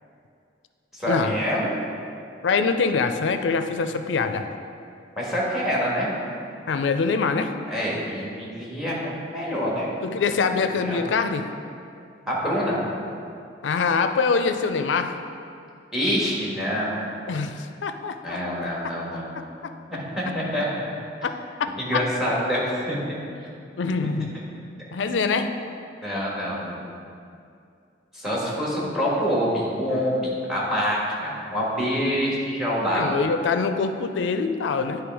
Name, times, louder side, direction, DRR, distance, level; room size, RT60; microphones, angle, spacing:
voice 1, 0.9-1.7 5.2-6.1 7.7-9.9 10.8-11.0 12.3-12.8 15.9-16.9 18.2-19.4 19.9-20.7 21.8-23.0 24.0-24.1 25.0-25.1 26.0-26.8 28.1-33.2, equal, ahead, -5 dB, 1.5 m, -26 dB
voice 2, 2.4-4.5 6.7-7.5 10.0-11.5 13.6-15.2 17.3-18.4 18.8-18.9 19.6-19.7 21.2-21.3 21.6-22.0 23.8-24.3 24.9-25.5 32.9-35.0, left 4 dB, 85° left, 8 dB, 0.4 m, -24 dB
9.6 x 3.2 x 4.7 m, 2.5 s
head